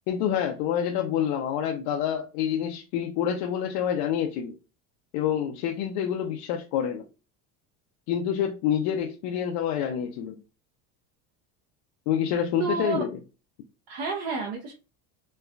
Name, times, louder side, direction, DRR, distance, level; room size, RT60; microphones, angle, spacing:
voice 1, 0.1-4.5 5.1-7.0 8.1-10.4 12.1-13.2, left 9 dB, 70° left, 0.5 m, -27 dB
voice 2, 12.6-13.0 13.9-14.7, right 4 dB, 60° right, 0.8 m, -30 dB
3.1 x 2.2 x 2.4 m
cardioid pair, 125°, 41 cm